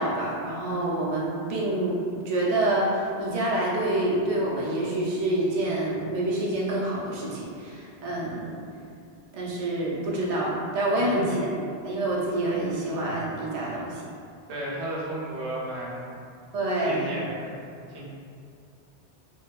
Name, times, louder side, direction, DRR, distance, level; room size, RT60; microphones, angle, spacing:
voice 1, 0.0-2.0 2.2-8.6 9.3-11.5 11.8-14.0 16.5-17.1, right 1 dB, 60° right, -5 dB, 0.4 m, -27 dB
voice 2, 14.5-16.2 16.8-18.0, right 1 dB, 80° right, -5 dB, 0.9 m, -34 dB
2.6 x 2.2 x 2.3 m, 2.4 s
omnidirectional pair, 1.1 m